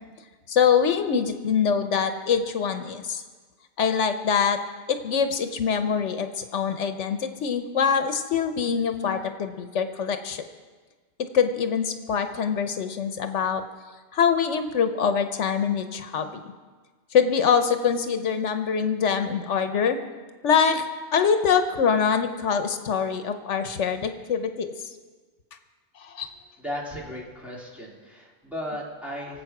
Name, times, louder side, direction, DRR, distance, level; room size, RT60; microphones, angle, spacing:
voice 1, 0.5-3.2 3.8-4.6 4.9-10.4 11.3-13.6 14.1-16.4 17.1-20.0 20.4-20.8 21.1-24.7 26.0-26.3, left 7 dB, 80° left, 8 dB, 1.1 m, -24 dB
voice 2, 26.6-29.4, equal, ahead, -5 dB, 3.4 m, -35 dB
24.0 x 8.3 x 5.9 m, 1.4 s
omnidirectional pair, 1.2 m